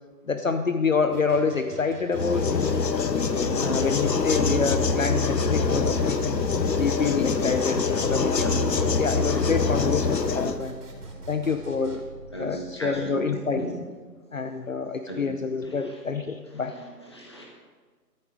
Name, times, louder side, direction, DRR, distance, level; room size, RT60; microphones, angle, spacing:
voice 1, 0.3-2.8 3.6-6.4 6.8-10.8 11.3-12.0 12.4-13.7 14.3-16.8, left 5 dB, 55° left, 8 dB, 0.7 m, -27 dB
sound 1, 1.1-12.0, right 2 dB, 65° right, 3.9 m, -44 dB
sound 2, 2.1-10.6, left 4 dB, 85° left, 1.2 m, -24 dB
sound 3, 3.2-12.8, right 3 dB, 30° right, 1.2 m, -40 dB
voice 2, 7.7-8.0 12.3-13.7 15.1-15.2 15.6-16.0 16.5-17.4, equal, 15° left, -1 dB, 1.2 m, -36 dB
13.0 x 12.0 x 4.8 m, 1.4 s
hypercardioid pair, 175°, 50 cm